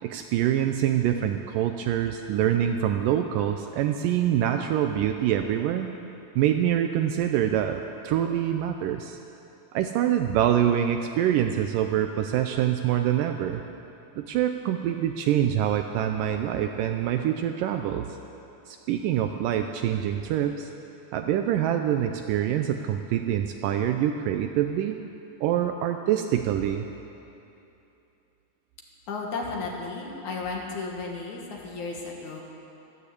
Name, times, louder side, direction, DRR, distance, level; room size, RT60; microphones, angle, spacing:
voice 1, 0.0-5.9 6.4-9.2 9.7-13.6 14.2-18.0 18.7-20.7 21.1-25.0 25.4-26.9, right 10 dB, 85° right, 6 dB, 2.0 m, -25 dB
voice 2, 29.1-32.4, left 3 dB, 60° left, -1 dB, 2.7 m, -34 dB
13.5 x 12.5 x 8.3 m, 2.9 s
omnidirectional pair, 4.3 m